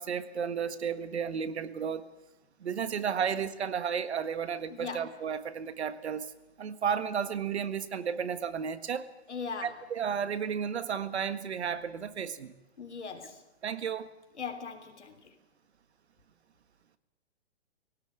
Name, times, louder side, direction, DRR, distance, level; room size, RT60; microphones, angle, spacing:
voice 1, 0.0-2.0 2.6-6.3 6.6-9.1 9.6-12.5 13.6-14.1, right 7 dB, 75° right, 12 dB, 1.7 m, -33 dB
voice 2, 4.7-5.1 9.3-9.7 12.8-13.4 14.4-15.2, left 5 dB, 85° left, 6 dB, 3.4 m, -39 dB
18.5 x 17.5 x 9.2 m, 0.98 s
hypercardioid pair, 135°, 33 cm